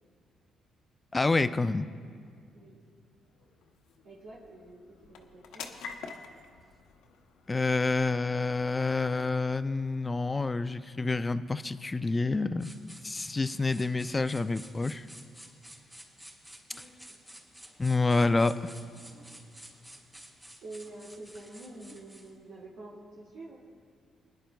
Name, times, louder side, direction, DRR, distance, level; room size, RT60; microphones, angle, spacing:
voice 1, 1.1-1.9 7.5-12.7 13.0-15.1 17.8-18.7, left 3 dB, 25° left, 13 dB, 0.4 m, -28 dB
sound 1, 2.5-17.0, left 5 dB, 85° left, 0.9 m, -52 dB
voice 2, 4.0-5.7 16.7-16.9 20.6-23.6, right 2 dB, 80° right, -6 dB, 2.0 m, -47 dB
sound 2, 12.6-22.3, right 1 dB, 10° right, 2.9 m, -51 dB
26.0 x 10.5 x 2.3 m, 2.1 s
cardioid pair, 90°, 0 cm